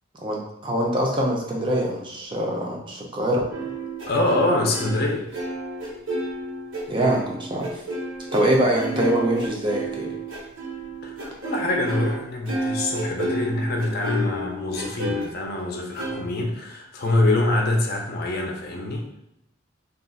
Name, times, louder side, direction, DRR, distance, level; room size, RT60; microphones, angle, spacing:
voice 1, 0.2-3.4 6.9-7.7 8.3-10.1, right 1 dB, 25° right, -1 dB, 0.5 m, -24 dB
sound 1, 3.5-12.2 12.5-15.2 15.9-16.1, right 1 dB, 85° right, 1.0 m, -31 dB
voice 2, 4.1-5.3 11.0-19.1, left 2 dB, 50° left, 1 dB, 0.5 m, -25 dB
2.4 x 2.3 x 3.9 m, 0.85 s
head